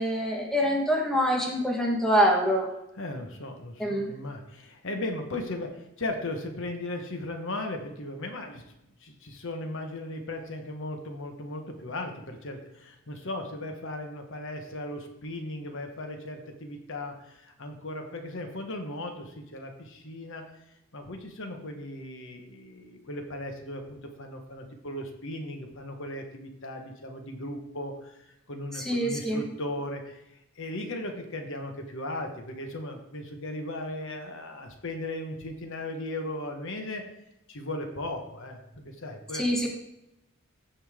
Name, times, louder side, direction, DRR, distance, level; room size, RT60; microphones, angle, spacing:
voice 1, 0.0-2.7 3.8-4.1 28.7-29.4 39.3-39.7, equal, ahead, -1 dB, 1.4 m, -25 dB
voice 2, 3.0-8.6 9.0-20.4 20.9-30.2 30.5-37.0 37.5-39.7, left 1 dB, 60° left, 4 dB, 1.3 m, -37 dB
15.0 x 5.6 x 3.7 m, 0.86 s
head